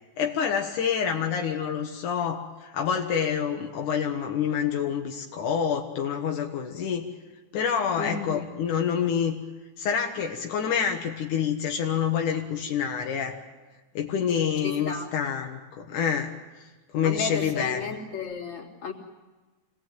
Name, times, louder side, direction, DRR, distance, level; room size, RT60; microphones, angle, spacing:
voice 1, 0.2-7.1 7.5-9.4 9.8-13.4 13.9-16.3 16.9-17.9, left 7 dB, 80° left, 2 dB, 2.9 m, -27 dB
voice 2, 8.0-8.4 14.6-15.1 17.0-18.9, left 5 dB, 45° left, 0 dB, 4.0 m, -33 dB
27.5 x 19.5 x 9.2 m, 1.2 s
omnidirectional pair, 3.5 m